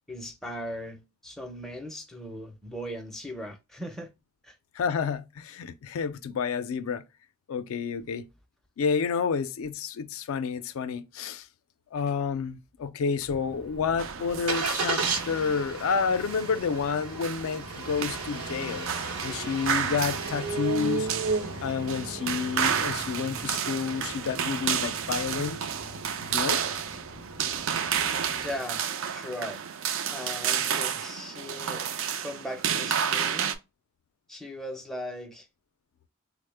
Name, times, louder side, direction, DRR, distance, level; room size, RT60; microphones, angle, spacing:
voice 1, 0.1-4.1 4.4-4.6 28.4-28.8 29.1-29.6 30.1-31.9 32.2-33.5 34.3-35.5, equal, ahead, 0.4 m, -38 dB
voice 2, 4.7-7.0 7.5-8.2 8.8-11.5 11.9-19.0 19.2-21.1 21.6-25.7 26.3-26.6 32.1-32.2, left 5 dB, 70° left, 0.3 m, -30 dB
Engine starting, 13.3-28.6, right 3 dB, 80° right, 0.8 m, -35 dB
sound 1, 14.0-33.5, right 8 dB, 65° right, 0.4 m, -31 dB
3.5 x 2.0 x 3.2 m
head